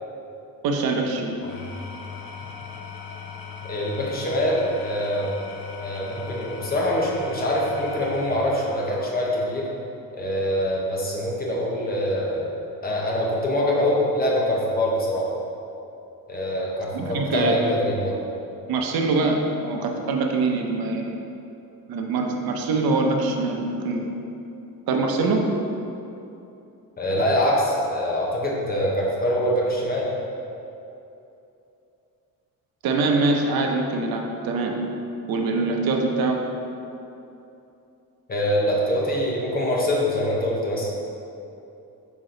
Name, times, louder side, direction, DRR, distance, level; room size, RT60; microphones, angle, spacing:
voice 1, 0.6-1.4 16.9-17.6 18.7-21.2 21.9-24.1 24.9-25.5 32.8-34.7 35.3-36.4, right 3 dB, 75° right, 2 dB, 0.8 m, -23 dB
Engine / Tools, 1.3-9.6, left 5 dB, 70° left, 0.9 m, -39 dB
voice 2, 3.7-5.3 5.8-9.7 10.1-12.5 12.8-15.3 16.3-18.2 27.0-30.1 38.3-40.9, equal, 25° left, -3 dB, 1.0 m, -24 dB
6.1 x 5.1 x 3.8 m, 2.8 s
cardioid pair, 155°, 36 cm